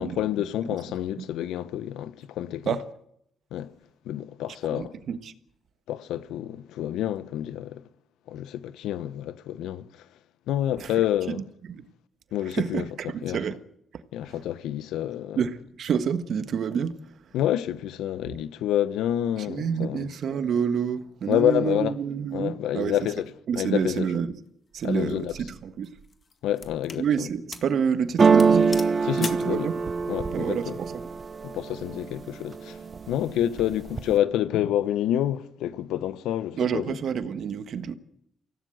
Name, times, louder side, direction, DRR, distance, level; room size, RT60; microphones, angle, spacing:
voice 1, 0.0-2.8 3.5-3.7 4.1-4.9 5.9-7.8 8.3-9.9 10.5-11.4 12.3-12.8 13.2-13.4 14.1-15.4 17.3-20.1 21.3-21.9 22.3-23.3 23.6-24.1 24.8-25.3 26.4-27.0 29.0-29.7 30.1-30.7 31.4-32.8 33.1-37.0, left 11 dB, 90° left, 1.0 m, -28 dB
voice 2, 4.7-5.3 10.8-10.9 11.3-11.8 12.5-13.6 14.3-14.4 15.4-17.0 19.5-23.0 23.5-24.3 24.7-25.9 27.0-28.8 29.2-29.7 30.3-31.0 36.6-37.9, right 7 dB, 65° right, 1.4 m, -28 dB
sound 1, 24.8-25.1 25.8-27.1 27.5-27.8 28.0-28.1 28.4-29.5, left 4 dB, 35° left, 1.9 m, -39 dB
sound 2, 28.2-32.1 32.5-33.1 33.4-34.2, right 5 dB, 35° right, 0.8 m, -23 dB
24.5 x 16.5 x 7.9 m
cardioid pair, 90°, 0 cm